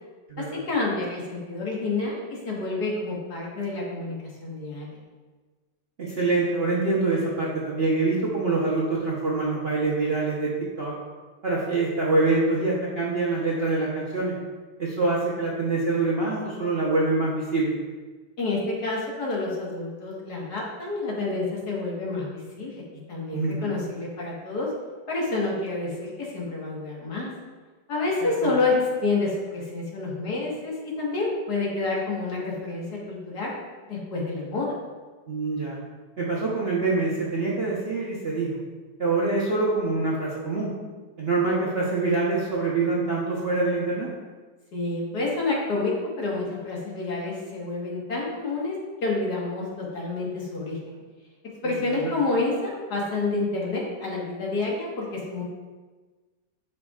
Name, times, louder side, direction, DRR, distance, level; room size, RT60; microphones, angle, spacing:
voice 1, 0.4-5.0 18.4-24.7 25.1-27.3 27.9-34.7 44.7-48.8 49.0-51.0 51.6-55.4, left 3 dB, 55° left, -3 dB, 2.0 m, -29 dB
voice 2, 6.0-10.5 10.8-10.9 11.4-14.3 14.8-17.8 23.3-23.7 28.2-28.5 35.3-35.8 36.2-38.6 39.0-40.7 41.2-44.1 51.7-51.8, right 3 dB, 40° right, -5 dB, 0.9 m, -25 dB
11.0 x 5.5 x 2.4 m, 1.3 s
omnidirectional pair, 2.1 m